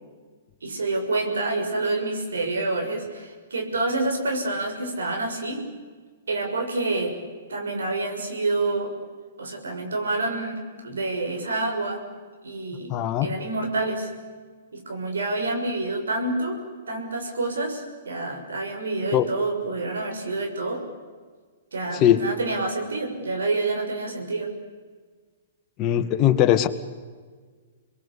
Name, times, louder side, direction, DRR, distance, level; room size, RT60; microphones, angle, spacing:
voice 1, 0.6-5.6 6.3-7.2 7.5-8.9 9.4-12.1 12.4-12.9 13.2-14.1 14.7-16.6 16.9-20.8 21.7-24.5, right 2 dB, 75° right, 3 dB, 6.6 m, -28 dB
voice 2, 12.9-13.4 19.1-19.3 21.9-22.3 25.8-26.7, left 11 dB, 30° left, 7 dB, 2.0 m, -20 dB
29.5 x 22.0 x 8.5 m, 1.5 s
figure-of-eight pair, 115°, 0 cm